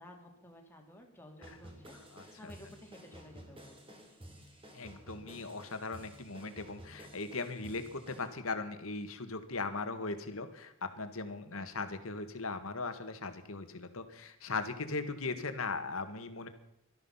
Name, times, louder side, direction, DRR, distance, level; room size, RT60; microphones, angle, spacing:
voice 1, 0.0-2.0 2.2-4.0 9.6-10.0 11.5-11.6, left 1 dB, 10° left, 1 dB, 2.8 m, -54 dB
sound 1, 1.4-8.3, equal, 25° right, 3.3 m, -53 dB
voice 2, 2.1-2.5 4.7-16.5, left 3 dB, 70° left, 9 dB, 1.7 m, -39 dB
18.0 x 13.0 x 5.7 m, 0.81 s
head